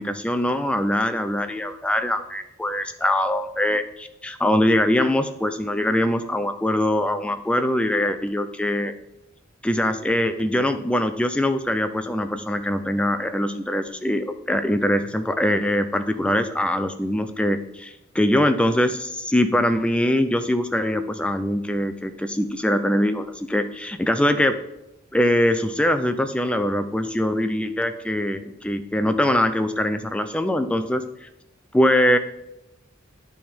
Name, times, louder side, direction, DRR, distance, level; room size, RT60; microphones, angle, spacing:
voice 1, 0.0-9.0 9.6-24.6 25.1-31.3 31.7-32.2, left 1 dB, 5° left, 8 dB, 0.3 m, -22 dB
9.5 x 3.5 x 4.3 m, 0.89 s
head